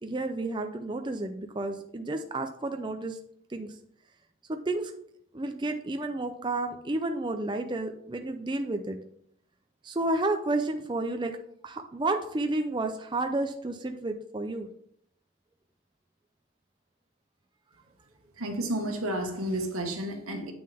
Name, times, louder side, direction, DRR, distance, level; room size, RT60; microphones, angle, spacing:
voice 1, 0.0-3.2 3.5-3.7 4.5-4.9 5.3-9.0 9.8-11.4 11.6-14.7, right 2 dB, 20° right, 0.5 m, -31 dB
voice 2, 18.4-20.5, right 1 dB, 85° right, 1.5 m, -31 dB
8.9 x 6.4 x 3.5 m
head